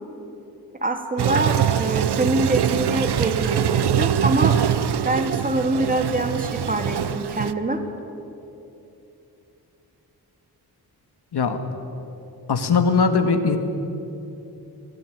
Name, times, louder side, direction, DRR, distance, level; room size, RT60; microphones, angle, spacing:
voice 1, 0.8-4.6 5.0-7.8, right 2 dB, 20° right, 6 dB, 2.3 m, -24 dB
Toilet flush, 1.2-7.5, right 9 dB, 85° right, 0.8 m, -23 dB
voice 2, 12.5-13.6, left 5 dB, 85° left, 7 dB, 2.1 m, -20 dB
25.5 x 18.0 x 9.5 m, 2.9 s
wide cardioid pair, 150°, 39 cm